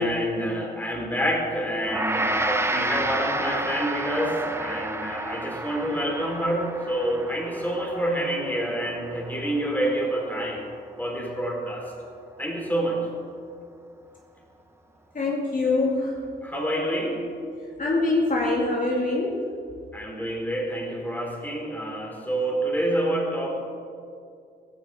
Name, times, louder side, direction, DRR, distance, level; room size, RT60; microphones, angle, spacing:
voice 1, 0.0-10.7 11.0-11.9 12.4-13.0 16.4-17.3 19.9-23.5, right 1 dB, 10° left, -1 dB, 3.9 m, -27 dB
Gong, 1.8-11.2, right 2 dB, 15° right, 0.9 m, -31 dB
voice 2, 15.1-16.2 17.6-19.4, left 2 dB, 45° left, -3 dB, 2.4 m, -24 dB
16.0 x 16.0 x 4.9 m, 2.4 s
wide cardioid pair, 120°, 19 cm